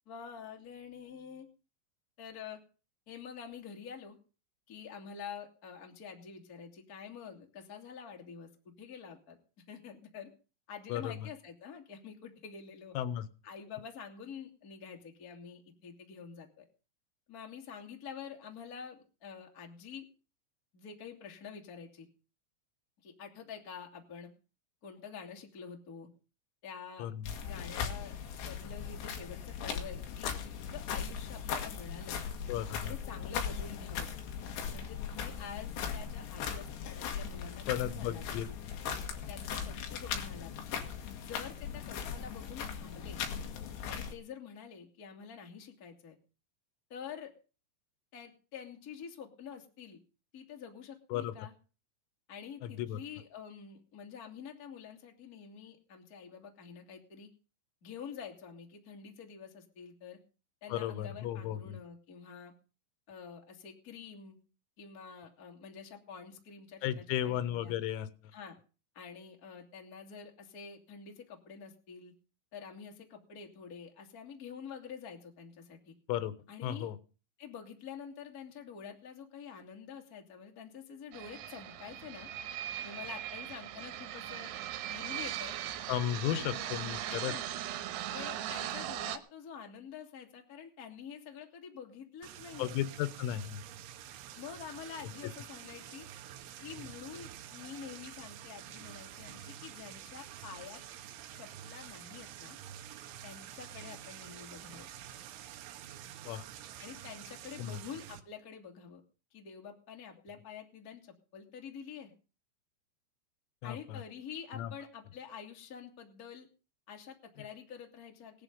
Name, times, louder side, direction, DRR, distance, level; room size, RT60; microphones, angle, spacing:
voice 1, 0.0-1.5 2.2-2.6 3.1-4.2 4.7-8.5 8.8-9.4 9.7-10.3 10.7-12.9 13.4-16.6 17.3-20.0 20.7-22.1 23.0-24.3 24.8-26.1 26.6-27.1 27.4-32.2 32.9-34.1 34.7-38.2 39.3-40.5 41.2-43.2 43.8-46.1 46.9-47.3 48.1-50.0 50.3-51.5 52.3-57.3 57.8-60.2 60.6-62.5 63.1-64.3 64.8-67.7 68.3-68.5 68.9-72.1 72.5-75.9 76.5-76.9 77.4-82.3 82.8-84.5 84.8-85.5 86.2-87.4 88.1-92.8 94.3-96.0 96.6-100.8 101.3-102.6 103.2-104.9 106.8-109.0 109.3-112.1 113.6-116.5 116.9-118.4, left 7 dB, 35° left, 2 dB, 1.5 m, -47 dB
voice 2, 10.9-11.3 13.0-13.3 27.0-27.2 32.5-33.0 37.7-38.5 39.2-39.3 51.1-51.3 52.6-53.0 60.7-61.8 66.8-68.1 76.1-76.3 76.6-77.0 85.9-87.4 92.6-93.6 106.3-106.4 107.6-107.8 113.6-114.0 114.5-114.7, left 11 dB, 90° left, 14 dB, 3.8 m, -34 dB
sound 1, 27.2-44.1, left 7 dB, 65° left, 3.6 m, -39 dB
sound 2, 81.1-89.2, right 12 dB, 90° right, 3.8 m, -39 dB
sound 3, 92.2-108.2, right 11 dB, 75° right, 3.3 m, -48 dB
18.0 x 11.0 x 5.4 m, 0.36 s
omnidirectional pair, 6.0 m